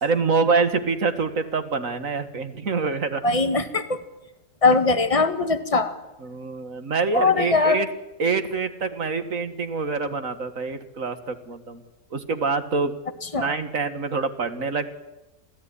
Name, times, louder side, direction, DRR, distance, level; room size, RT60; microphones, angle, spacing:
voice 1, 0.0-3.4 6.2-7.9 8.2-11.8 12.1-12.9 13.3-14.9, right 4 dB, 65° right, 9 dB, 2.2 m, -26 dB
voice 2, 3.2-4.0 4.6-5.9 7.1-7.8 13.3-13.5, left 3 dB, 25° left, 9 dB, 1.8 m, -20 dB
27.5 x 17.5 x 9.9 m, 1.0 s
omnidirectional pair, 1.5 m